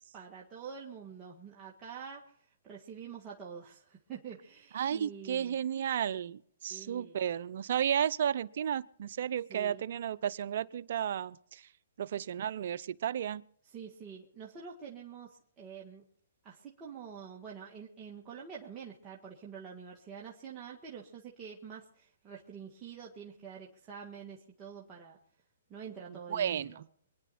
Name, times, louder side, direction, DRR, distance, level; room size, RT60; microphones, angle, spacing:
voice 1, 0.1-5.6 6.7-7.3 9.5-9.8 13.7-16.0 16.4-25.2 25.7-26.8, right 6 dB, 20° right, -4 dB, 1.8 m, -47 dB
voice 2, 4.7-11.7 12.0-13.4 26.1-26.8, right 9 dB, 60° right, 16 dB, 0.6 m, -33 dB
25.0 x 10.5 x 4.3 m, 0.62 s
hypercardioid pair, 140°, 0 cm